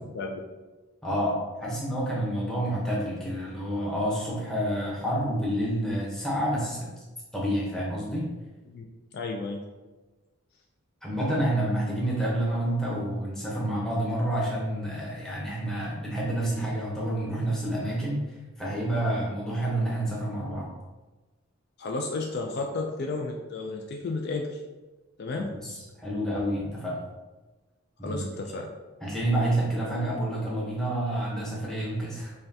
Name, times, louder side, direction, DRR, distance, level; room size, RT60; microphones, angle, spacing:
voice 1, 1.0-6.9 7.3-8.3 11.0-18.3 18.6-20.7 25.6-27.0 28.0-28.2 29.0-32.3, right 1 dB, ahead, -6 dB, 0.8 m, -28 dB
voice 2, 9.1-9.6 21.8-24.6 25.2-25.6 28.0-28.7, left 3 dB, 50° left, 1 dB, 0.3 m, -32 dB
5.4 x 2.3 x 2.7 m, 1.2 s
head